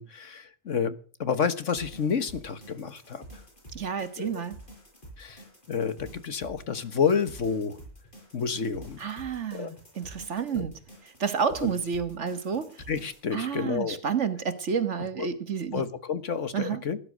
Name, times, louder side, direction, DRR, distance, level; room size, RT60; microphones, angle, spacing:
voice 1, 0.0-3.4 4.2-4.3 5.2-5.4 5.7-7.8 8.3-9.0 9.5-9.7 10.5-10.7 11.6-11.7 12.9-14.0 15.2-15.3 15.7-17.0, left 6 dB, 65° left, 12 dB, 1.6 m, -29 dB
sound 1, 1.7-13.2, right 1 dB, 35° left, 7.6 m, -49 dB
voice 2, 3.7-4.6 9.0-10.8 11.2-12.7 13.3-15.8 16.5-16.8, right 6 dB, 60° right, 11 dB, 1.7 m, -30 dB
18.5 x 11.0 x 6.4 m, 0.42 s
omnidirectional pair, 1.4 m